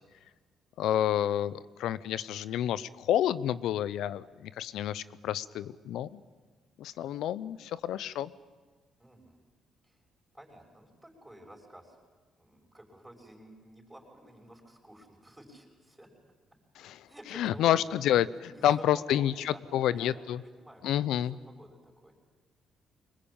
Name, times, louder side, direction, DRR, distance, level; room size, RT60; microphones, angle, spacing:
voice 1, 0.8-6.2 6.8-8.3 16.8-17.0 17.3-19.3 19.7-20.4 20.8-21.4, left 11 dB, 85° left, 17 dB, 0.7 m, -29 dB
voice 2, 9.0-9.4 9.8-10.0 10.3-12.0 12.4-16.1 17.1-18.0 18.4-19.6 19.9-20.1 20.4-22.1, right 1 dB, 10° right, 0 dB, 6.4 m, -52 dB
24.5 x 21.0 x 8.9 m, 1.4 s
cardioid pair, 90°, 0 cm